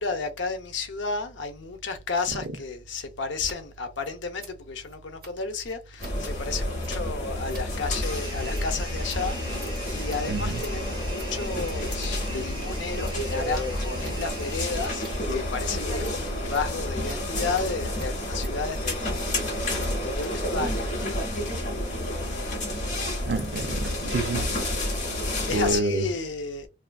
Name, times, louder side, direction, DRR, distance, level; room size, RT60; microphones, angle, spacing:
voice 1, 0.0-15.1 15.3-20.9 25.5-26.7, left 4 dB, 85° left, 0.6 m, -32 dB
Scissors, 3.4-3.6 3.8-12.1 12.4-13.2 13.5-14.1 14.4-21.2, right 3 dB, 50° right, 1.3 m, -50 dB
sound 1, 6.0-25.7, left 1 dB, 40° left, 1.0 m, -30 dB
sound 2, 8.0-15.7, right 2 dB, 25° right, 0.8 m, -42 dB
voice 2, 10.3-10.6 23.2-24.4 25.5-26.1, right 2 dB, 70° right, 0.5 m, -28 dB
2.7 x 2.4 x 2.3 m
head